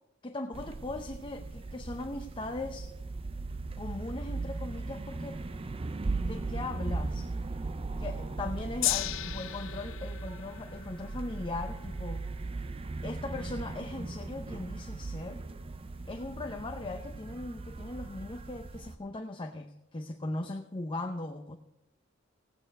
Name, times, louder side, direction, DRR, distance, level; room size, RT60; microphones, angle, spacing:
voice 1, 0.2-2.9 3.8-5.4 6.2-7.3 8.0-12.2 13.0-15.4 16.1-21.6, left 2 dB, 25° left, 5 dB, 0.7 m, -39 dB
sound 1, 0.5-19.0, right 3 dB, 30° right, 0.5 m, -38 dB
Gong, 8.8-15.2 16.0-16.1, left 15 dB, 80° left, 0.4 m, -38 dB
16.5 x 8.8 x 4.6 m, 0.87 s
head